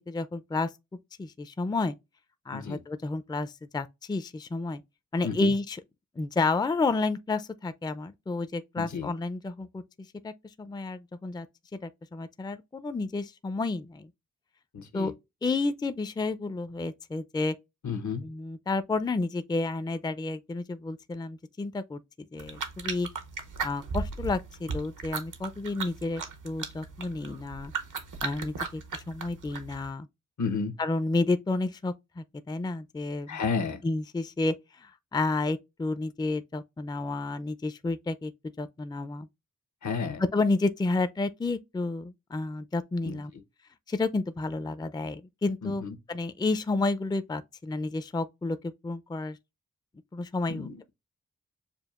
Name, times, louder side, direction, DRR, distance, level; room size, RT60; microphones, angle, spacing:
voice 1, 0.1-0.7 1.2-1.9 2.5-4.8 5.1-5.8 6.2-9.8 10.2-10.3 10.6-11.5 11.8-14.1 14.9-15.1 15.4-17.6 18.2-22.0 22.3-23.1 23.6-27.7 28.2-30.1 30.8-33.4 33.8-38.3 38.6-39.3 40.2-43.3 43.9-49.4 50.1-50.9, left 3 dB, 15° left, 0.4 m, -31 dB
voice 2, 8.8-9.1 14.7-15.1 17.8-18.2 30.4-30.7 33.3-33.8 39.8-40.2 43.0-43.2 45.6-45.9 50.5-50.8, left 5 dB, 70° left, 0.9 m, -32 dB
sound 1, 22.4-29.9, right 5 dB, 80° right, 0.8 m, -37 dB
6.9 x 2.4 x 2.4 m
cardioid pair, 40°, 31 cm